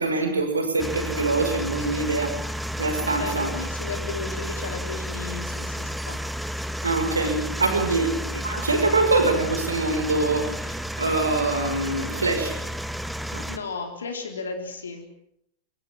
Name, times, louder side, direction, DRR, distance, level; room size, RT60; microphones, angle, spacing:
voice 1, 0.0-2.4 2.8-3.5 6.8-12.5 13.3-13.5, right 3 dB, 75° right, 5 dB, 5.7 m, -24 dB
sound 1, 0.8-13.6, equal, ahead, 1.4 m, -32 dB
voice 2, 3.0-6.2 7.9-8.0 13.5-15.1, left 4 dB, 70° left, 5 dB, 3.9 m, -35 dB
23.5 x 23.0 x 7.4 m, 0.73 s
figure-of-eight pair, 90°, 0 cm